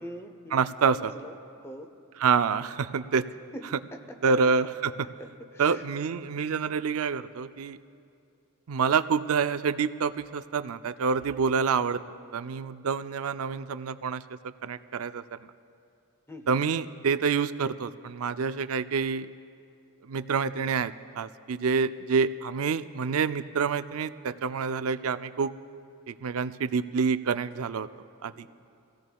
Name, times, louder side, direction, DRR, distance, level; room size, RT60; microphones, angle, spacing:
voice 1, 0.0-0.6 0.9-1.3 1.6-1.9 3.5-3.6 3.9-4.0 5.2-5.8 16.3-16.6 28.3-28.5, equal, 10° left, 6 dB, 0.8 m, -43 dB
voice 2, 0.5-1.1 2.2-3.2 4.2-5.1 5.6-7.8 8.7-12.0 12.3-14.2 14.6-15.2 16.5-19.3 20.0-25.5 26.1-27.9 28.2-28.5, right 5 dB, 75° right, 12 dB, 0.4 m, -27 dB
25.5 x 17.0 x 2.3 m, 2.4 s
head